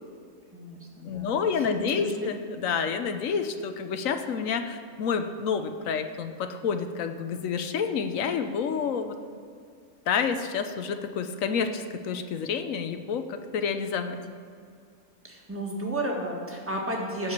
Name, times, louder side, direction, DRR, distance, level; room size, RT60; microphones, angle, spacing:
voice 1, 0.5-2.1 15.2-17.3, right 1 dB, 10° right, -2 dB, 1.6 m, -33 dB
voice 2, 1.0-9.2 10.1-14.2, left 6 dB, 75° left, 8 dB, 1.2 m, -29 dB
14.0 x 4.8 x 8.4 m, 2.2 s
omnidirectional pair, 1.4 m